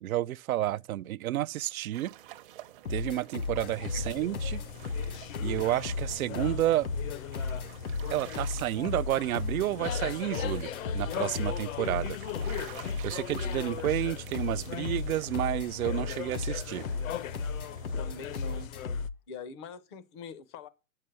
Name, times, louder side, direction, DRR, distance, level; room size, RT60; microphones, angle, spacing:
voice 1, 0.0-2.1 2.9-4.6 5.4-6.9 8.1-12.2 13.0-16.8, right 14 dB, 75° right, 0.5 m, -30 dB
sound 1, 1.9-18.7, right 13 dB, 35° right, 0.7 m, -51 dB
sound 2, 2.9-19.2, left 4 dB, 85° left, 1.3 m, -35 dB
sound 3, 3.6-19.1, left 9 dB, 65° left, 0.7 m, -39 dB
voice 2, 18.0-18.7 19.3-20.7, left 5 dB, 20° left, 0.4 m, -43 dB
8.6 x 6.6 x 5.6 m
hypercardioid pair, 140°, 43 cm